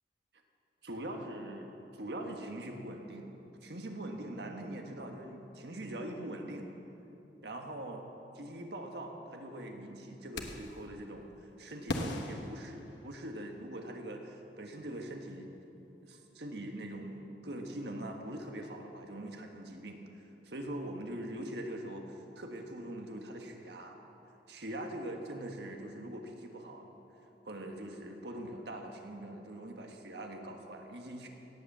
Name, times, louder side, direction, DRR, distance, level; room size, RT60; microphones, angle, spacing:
voice 1, 0.8-3.3 3.6-6.7 7.4-8.0 8.3-15.5 16.0-24.0 24.5-26.9 27.4-31.3, right 1 dB, 70° right, 3 dB, 1.4 m, -42 dB
sound 1, 10.3-10.8 11.9-13.4, left 1 dB, 90° left, 1.2 m, -38 dB
17.5 x 8.2 x 7.3 m, 3.0 s
head